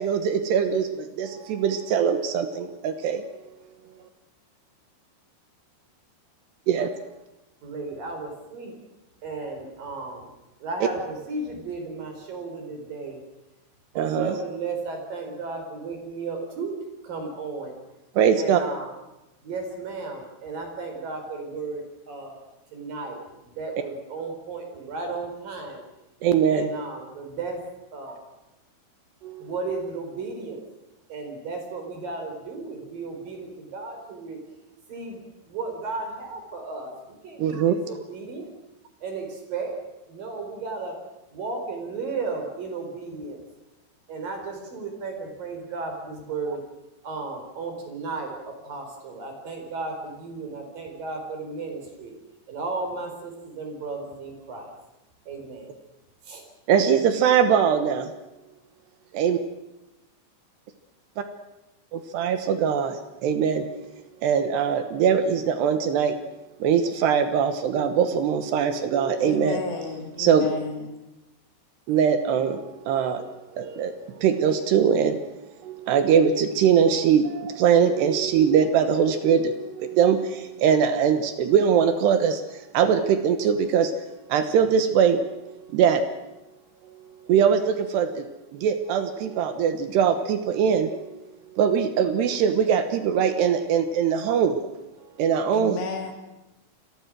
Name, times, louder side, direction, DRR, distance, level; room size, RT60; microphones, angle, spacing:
voice 1, 0.0-3.2 6.7-6.9 14.0-14.3 18.2-18.6 26.2-26.7 37.4-37.8 56.7-58.1 59.1-59.4 61.9-63.0 63.2-63.6 64.2-66.1 66.6-69.6 70.2-70.5 71.9-72.6 72.9-73.2 73.6-73.9 74.2-75.2 75.7-82.4 82.7-83.9 84.3-85.2 85.7-86.0 87.3-88.1 88.6-90.9 91.6-94.6 95.2-95.8, right 7 dB, 75° right, 8 dB, 3.2 m, -21 dB
voice 2, 7.6-8.8 9.2-10.3 10.6-13.2 13.9-16.7 17.0-17.8 18.4-18.9 19.4-22.4 22.7-25.8 26.5-27.6 27.9-28.3 29.4-30.6 31.1-34.4 34.9-35.2 35.4-38.5 39.0-39.8 40.1-41.0 41.3-43.4 44.1-46.6 47.0-52.1 52.5-54.7 55.3-55.7 56.2-56.4, right 3 dB, 50° right, 4 dB, 5.9 m, -34 dB
voice 3, 69.2-71.0 95.5-96.1, left 5 dB, 70° left, 4 dB, 4.8 m, -32 dB
28.5 x 21.5 x 6.3 m, 0.98 s
omnidirectional pair, 5.2 m